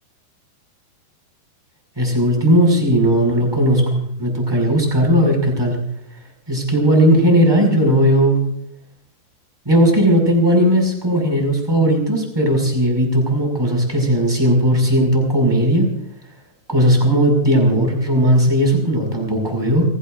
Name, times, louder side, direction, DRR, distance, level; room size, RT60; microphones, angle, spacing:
voice 1, 2.0-5.8 6.5-8.4 9.6-15.9 16.7-19.8, equal, 5° right, 1 dB, 5.7 m, -16 dB
29.0 x 18.0 x 2.6 m, 0.71 s
omnidirectional pair, 5.0 m